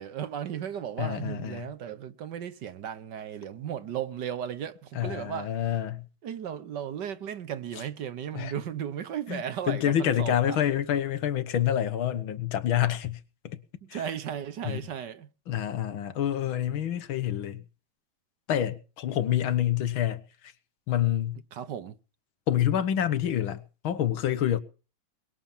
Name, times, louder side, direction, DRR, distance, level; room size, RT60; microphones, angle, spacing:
voice 1, 0.0-5.5 6.2-10.7 13.8-15.3 21.5-21.9, right 9 dB, 60° right, 1.6 m, -35 dB
voice 2, 1.0-1.7 4.9-6.1 8.3-8.5 9.3-13.6 13.9-14.1 14.6-14.9 15.5-17.6 18.5-20.5 20.9-21.4 22.5-24.6, left 10 dB, 80° left, 2.0 m, -27 dB
22.0 x 7.3 x 7.2 m
omnidirectional pair, 2.2 m